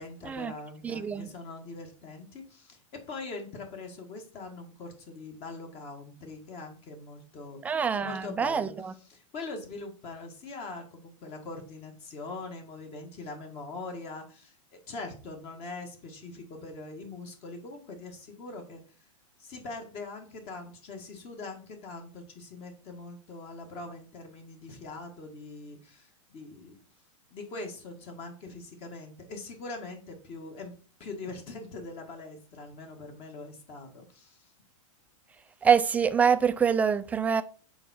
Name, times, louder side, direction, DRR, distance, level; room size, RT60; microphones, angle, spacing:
voice 1, 0.0-8.7 9.1-18.8 19.4-26.8 27.3-30.7 31.0-34.5, left 3 dB, 35° left, 1.7 m, -42 dB
voice 2, 0.8-1.3 7.6-8.9 35.6-37.4, right 7 dB, 10° right, 0.4 m, -25 dB
7.0 x 4.7 x 4.3 m
hypercardioid pair, 135°, 17 cm